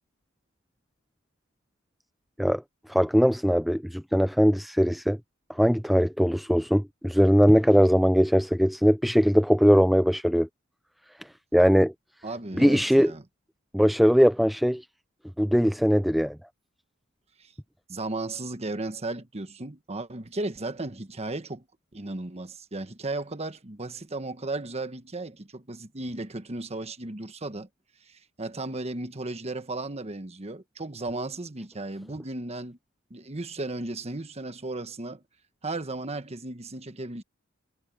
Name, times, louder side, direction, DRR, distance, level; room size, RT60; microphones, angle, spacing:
voice 1, 2.9-5.2 5.5-10.5 11.5-11.9 12.6-13.1 13.7-14.8 15.4-16.4, equal, ahead, 0.3 m, -20 dB
voice 2, 12.2-13.2 17.9-21.6 21.9-27.7 28.1-32.8 33.1-35.2 35.6-37.2, right 2 dB, 30° right, 1.3 m, -35 dB
head